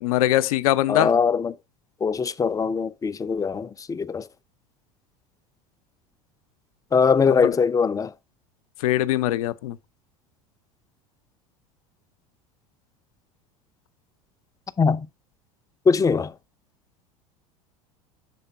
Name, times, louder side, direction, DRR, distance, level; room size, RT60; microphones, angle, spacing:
voice 1, 0.0-1.1 7.4-7.5 8.8-9.8, left 15 dB, 75° left, 0.5 m, -22 dB
voice 2, 0.9-1.5 2.0-4.2 6.9-8.1 14.8-15.1 15.9-16.3, left 5 dB, 20° left, 0.5 m, -21 dB
6.8 x 3.6 x 5.4 m
hypercardioid pair, 80°, 18 cm